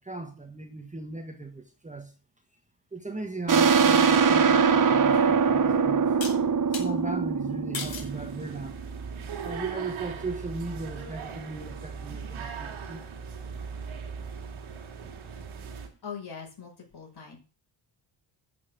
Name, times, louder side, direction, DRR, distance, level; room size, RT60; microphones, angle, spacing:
voice 1, 0.0-2.1 2.9-6.1 6.8-8.7 9.4-13.0, right 3 dB, 15° right, 1.5 m, -37 dB
sound 1, 3.5-8.8, right 5 dB, 40° right, 1.3 m, -22 dB
sound 2, 4.8-4.9 6.2-6.9 7.7-8.1 8.8-9.2, left 5 dB, 70° left, 3.4 m, -37 dB
sound 3, 7.8-15.9, right 6 dB, 85° right, 2.6 m, -39 dB
voice 2, 16.0-17.4, left 6 dB, 55° left, 5.8 m, -41 dB
10.5 x 6.0 x 8.3 m
cardioid pair, 95°, 47 cm